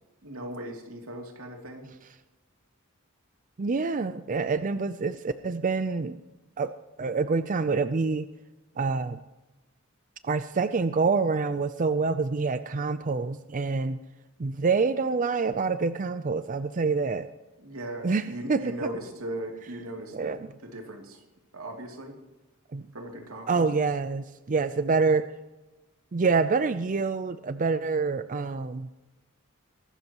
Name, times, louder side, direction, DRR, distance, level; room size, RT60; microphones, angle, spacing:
voice 1, 0.2-1.9 17.6-20.3 20.6-21.2 21.5-22.1 22.9-23.7, right 1 dB, 85° right, 2 dB, 2.8 m, -38 dB
voice 2, 3.6-6.2 6.6-6.7 7.0-8.3 8.8-9.2 10.2-14.0 14.4-17.3 18.0-18.9 20.1-20.5 22.7-22.8 23.5-25.3 26.1-28.9, right 4 dB, 40° right, 12 dB, 0.5 m, -26 dB
22.5 x 13.0 x 3.0 m, 1.0 s
head